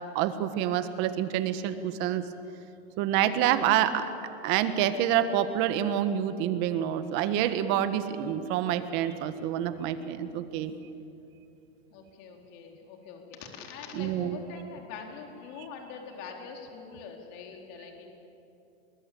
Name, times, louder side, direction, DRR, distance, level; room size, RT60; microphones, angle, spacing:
voice 1, 0.1-2.2 3.0-4.1 4.4-10.7 13.9-14.4, right 11 dB, 35° right, 10 dB, 1.5 m, -27 dB
voice 2, 11.9-18.1, left 6 dB, 40° left, 2 dB, 4.0 m, -44 dB
29.0 x 20.5 x 8.5 m, 2.8 s
supercardioid pair, 155°, 34 cm